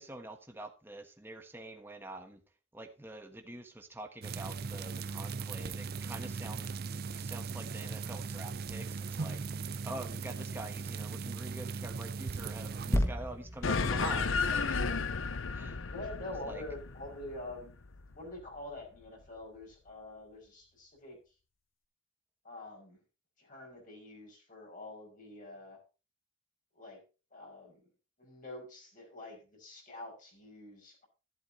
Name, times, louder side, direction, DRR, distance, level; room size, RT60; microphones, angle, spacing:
voice 1, 0.0-2.4 2.7-6.7 7.2-15.0 15.5-15.8 16.4-16.6, right 2 dB, 10° right, 5 dB, 1.3 m, -46 dB
sound 1, 4.2-13.0, right 4 dB, 50° right, 0.5 m, -38 dB
sound 2, 12.9-16.5 17.1-17.2, equal, 15° left, 1.5 m, -35 dB
sound 3, 13.6-18.4, left 4 dB, 80° left, 0.7 m, -33 dB
voice 2, 15.9-17.8 18.1-21.2 22.4-23.0 23.4-25.8 26.7-27.0 27.3-27.9 28.2-31.1, left 2 dB, 40° left, 0 dB, 5.6 m, -46 dB
12.0 x 11.5 x 2.8 m, 0.31 s
head